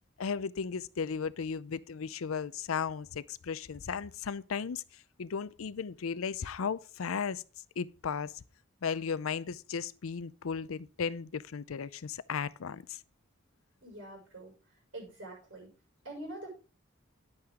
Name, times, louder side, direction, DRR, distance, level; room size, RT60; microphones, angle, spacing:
voice 1, 0.2-4.8 5.2-7.4 7.8-8.3 8.8-13.0, left 6 dB, 90° left, 0.5 m, -35 dB
voice 2, 13.8-14.5 14.9-15.7 16.0-16.5, right 1 dB, 65° right, 6.1 m, -44 dB
10.5 x 8.7 x 3.7 m
head